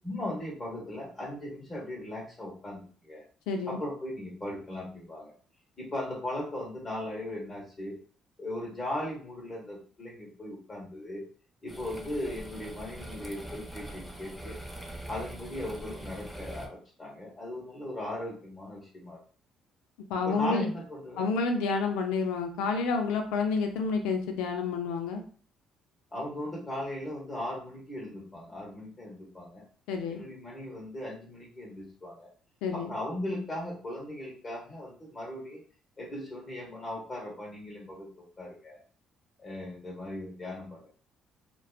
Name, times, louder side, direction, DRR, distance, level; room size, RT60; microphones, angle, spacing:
voice 1, 0.0-3.2 3.7-5.3 5.8-8.0 8.4-11.2 11.6-14.6 15.1-19.2 20.2-21.3 26.1-29.6 30.1-32.3 32.7-35.6 36.0-38.1 38.4-38.8 39.4-40.9, left 1 dB, 35° left, -2 dB, 1.1 m, -38 dB
voice 2, 3.5-3.8 20.1-20.7 21.2-25.2 29.9-30.2 32.6-32.9, left 4 dB, 80° left, 4 dB, 0.4 m, -29 dB
sound 1, 11.7-16.7, right 1 dB, 5° left, 0.5 m, -43 dB
2.4 x 2.2 x 2.3 m, 0.43 s
supercardioid pair, 70°, 0 cm